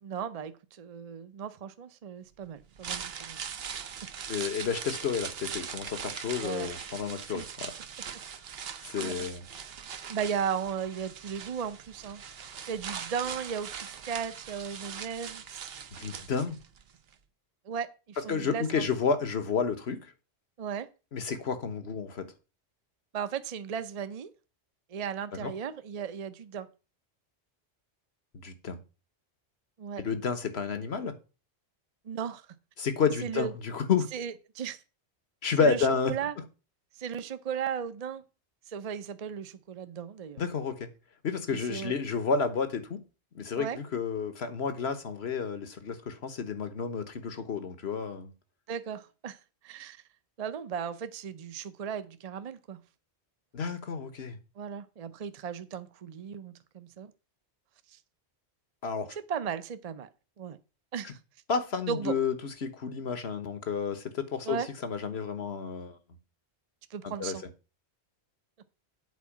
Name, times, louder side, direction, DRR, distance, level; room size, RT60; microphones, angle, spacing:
voice 1, 0.0-3.4 6.4-6.7 7.3-7.4 9.0-9.2 10.1-12.2 12.7-15.7 17.6-18.9 20.6-20.9 23.1-24.3 24.9-26.7 29.8-30.1 32.0-32.5 33.2-33.5 34.1-34.8 35.6-36.3 37.0-38.2 38.7-40.4 41.5-41.9 43.5-43.8 48.7-49.4 49.6-50.0 50.4-52.8 54.6-57.1 57.9-58.0 59.3-60.1 60.4-60.6 60.9-61.2 61.9-62.2 64.4-64.7 66.9-67.4, right 7 dB, 40° right, 0.7 m, -36 dB
sound 1, 2.6-16.8 17.1-17.2, right 7 dB, 65° right, 1.0 m, -41 dB
voice 2, 4.3-7.7 8.8-9.4 15.9-16.6 18.3-20.1 21.1-22.2 25.4-25.5 28.3-28.8 30.0-31.1 32.8-34.1 35.4-36.1 40.4-40.9 41.2-43.0 43.3-48.3 53.5-54.4 58.8-59.2 61.0-61.1 61.5-62.3 62.6-66.0 67.0-67.3, left 5 dB, 70° left, 1.5 m, -31 dB
8.3 x 4.7 x 7.2 m
omnidirectional pair, 1.1 m